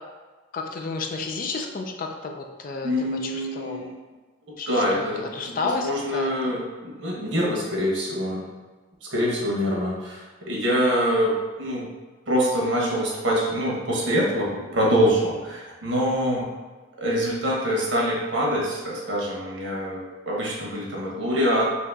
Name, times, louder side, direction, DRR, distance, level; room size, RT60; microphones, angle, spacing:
voice 1, 0.5-3.9 4.6-6.5, left 4 dB, 45° left, 3 dB, 0.4 m, -32 dB
voice 2, 2.8-3.9 4.7-5.2 5.6-8.4 9.0-11.9 12.3-16.5 17.0-21.6, equal, 80° right, -3 dB, 1.0 m, -25 dB
2.9 x 2.7 x 3.4 m, 1.3 s
head